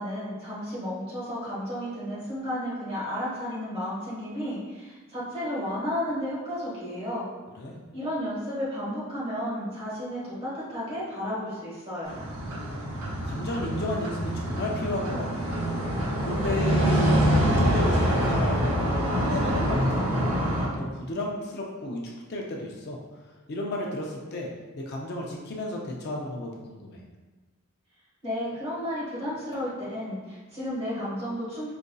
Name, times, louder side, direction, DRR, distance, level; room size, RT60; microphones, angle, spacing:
voice 1, 0.0-7.3 7.9-12.1 28.2-31.7, equal, 30° right, -8 dB, 1.3 m, -32 dB
sound 1, 12.1-20.7, equal, 85° right, 0.9 m, -25 dB
voice 2, 12.4-12.8 13.2-15.7 16.2-20.4 20.7-22.0 22.3-23.0 23.5-24.5 24.7-27.0, left 1 dB, 50° left, -2 dB, 0.4 m, -33 dB
4.9 x 2.5 x 2.2 m, 1.3 s
head